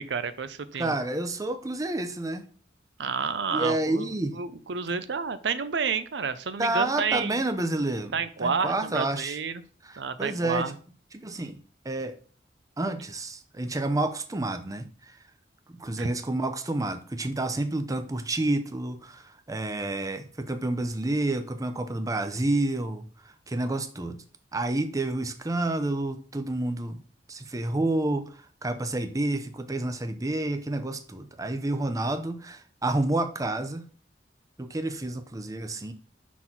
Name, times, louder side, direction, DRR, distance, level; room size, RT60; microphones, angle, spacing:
voice 1, 0.0-0.9 3.0-4.1 4.4-7.4 8.1-9.6 10.0-10.7 16.0-16.1, right 5 dB, 75° right, 0.6 m, -30 dB
voice 2, 0.8-2.5 3.5-4.4 4.9-5.0 6.6-9.4 9.8-10.7 11.1-11.6 11.8-12.2 12.8-15.2 15.7-24.2 24.5-27.0 27.3-33.8 34.6-35.9, right 2 dB, 20° right, 0.6 m, -29 dB
6.1 x 3.8 x 5.9 m
head